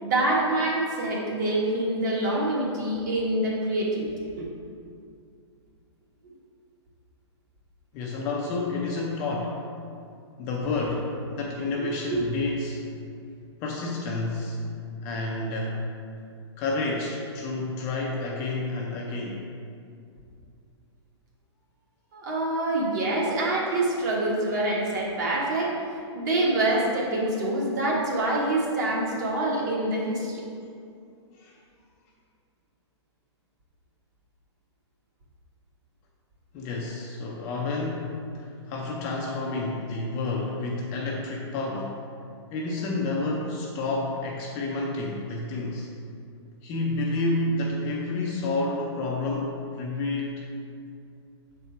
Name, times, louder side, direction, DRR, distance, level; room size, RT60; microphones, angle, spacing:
voice 1, 0.0-4.5 11.8-12.2 22.1-30.4, right 1 dB, 40° right, -3 dB, 1.4 m, -26 dB
voice 2, 7.9-9.6 10.4-12.8 13.6-14.6 15.0-15.8 16.6-19.4 31.3-31.6 36.5-42.0 42.5-45.9 46.6-50.4, left 2 dB, 20° left, -2 dB, 0.4 m, -30 dB
6.7 x 4.3 x 4.5 m, 2.4 s
hypercardioid pair, 165°, 15 cm